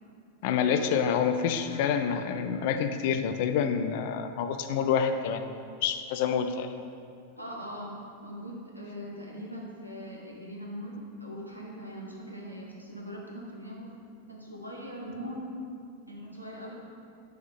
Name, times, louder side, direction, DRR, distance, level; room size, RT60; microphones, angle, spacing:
voice 1, 0.4-5.4 5.8-6.7, left 7 dB, 50° left, 8 dB, 0.3 m, -27 dB
voice 2, 1.7-2.0 7.4-7.9 8.2-14.0 14.3-15.4 16.1-16.7, equal, 90° right, -3 dB, 1.0 m, -41 dB
6.1 x 3.6 x 4.9 m, 2.5 s
figure-of-eight pair, 90°, 0 cm